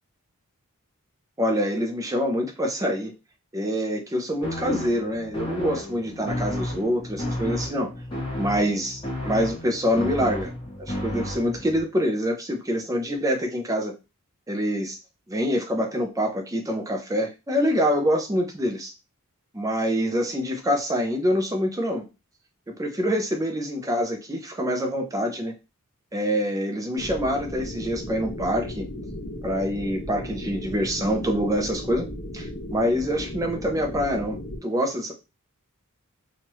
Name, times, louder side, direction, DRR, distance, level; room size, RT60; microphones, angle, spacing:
voice 1, 1.4-3.1 3.5-7.9 8.4-10.5 10.8-13.9 14.5-15.0 15.3-18.9 19.5-22.1 22.7-25.5 26.1-28.8 29.4-32.1 32.3-35.1, equal, 15° right, 3 dB, 0.5 m, -25 dB
sound 1, 4.4-11.8, left 1 dB, 20° left, 0.8 m, -32 dB
sound 2, 26.9-34.6, left 1 dB, 55° left, 1.3 m, -36 dB
3.0 x 2.4 x 3.0 m, 0.27 s
head